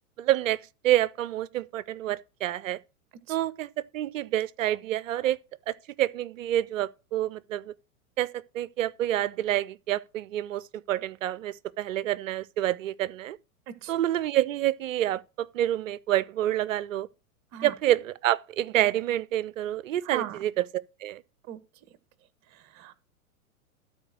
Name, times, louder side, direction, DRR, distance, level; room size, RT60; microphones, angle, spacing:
voice 1, 0.2-2.8 3.3-5.4 5.7-7.7 8.2-13.4 13.9-17.1 17.6-20.5 21.0-21.2, right 13 dB, 65° right, 0.7 m, -28 dB
voice 2, 20.0-20.4 21.5-21.6 22.5-23.0, right 10 dB, 35° right, 1.3 m, -38 dB
12.5 x 4.4 x 6.1 m
hypercardioid pair, 110°, 43 cm